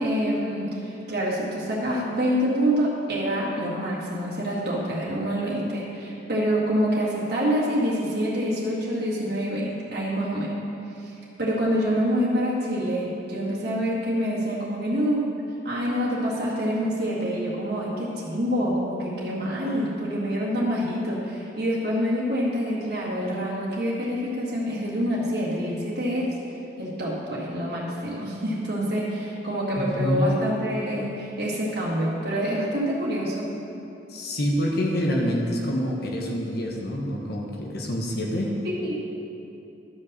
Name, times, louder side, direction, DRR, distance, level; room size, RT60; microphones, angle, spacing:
voice 1, 0.0-10.5 11.0-11.1 11.4-15.3 15.6-26.4 26.8-33.5 38.6-38.9, equal, 60° right, -6 dB, 1.9 m, -26 dB
voice 2, 29.8-30.3 34.1-38.5, equal, 60° left, -1 dB, 1.2 m, -26 dB
11.5 x 5.4 x 6.7 m, 2.8 s
head